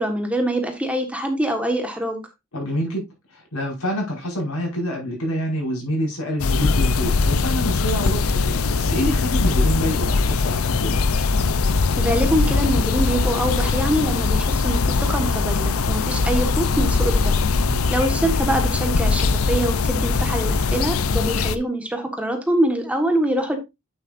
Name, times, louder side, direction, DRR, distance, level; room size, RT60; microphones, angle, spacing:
voice 1, 0.0-2.2 12.0-17.5 17.9-23.6, right 1 dB, 5° right, 1.4 m, -24 dB
voice 2, 2.5-11.0 17.6-17.9, equal, 90° left, 5.4 m, -27 dB
sound 1, 6.4-21.6, left 4 dB, 70° left, 0.6 m, -21 dB
9.1 x 7.7 x 2.6 m
head